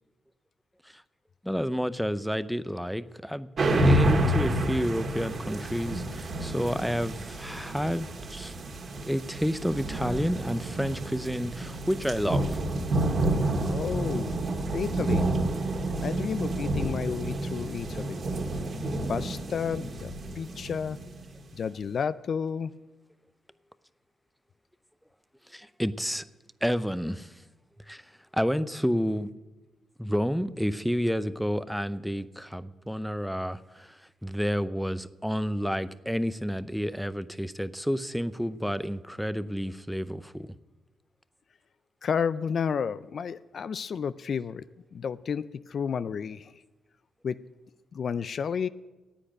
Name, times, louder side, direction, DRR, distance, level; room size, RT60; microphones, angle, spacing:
voice 1, 1.4-3.5 3.8-8.5 9.1-12.6 25.5-26.2 26.6-27.3 27.9-28.0 28.3-29.3 30.0-40.5, equal, ahead, 14 dB, 0.6 m, -30 dB
sound 1, 3.6-21.4, right 1 dB, 55° right, 1.9 m, -29 dB
voice 2, 13.6-14.3 14.7-15.3 15.7-15.8 16.0-18.2 19.1-20.1 20.4-21.0 21.5-22.7 42.0-44.6 44.9-46.5 47.2-47.4 47.9-48.7, left 6 dB, 60° left, 15 dB, 0.4 m, -31 dB
9.9 x 8.7 x 9.2 m, 1.1 s
supercardioid pair, 50°, 0 cm